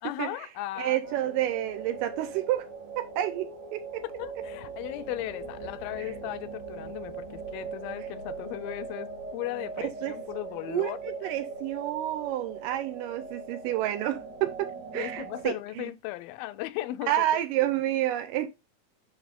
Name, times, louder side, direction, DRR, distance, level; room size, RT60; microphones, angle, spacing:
voice 1, 0.0-1.2 4.0-11.0 14.9-17.1, left 15 dB, 85° left, 2.4 m, -37 dB
voice 2, 0.8-2.7 3.0-4.0 6.0-6.1 9.8-10.2 10.7-15.9 17.1-18.5, right 13 dB, 80° right, 2.1 m, -29 dB
sound 1, 1.0-15.5, right 4 dB, 55° right, 2.9 m, -40 dB
9.4 x 3.5 x 3.6 m
omnidirectional pair, 4.2 m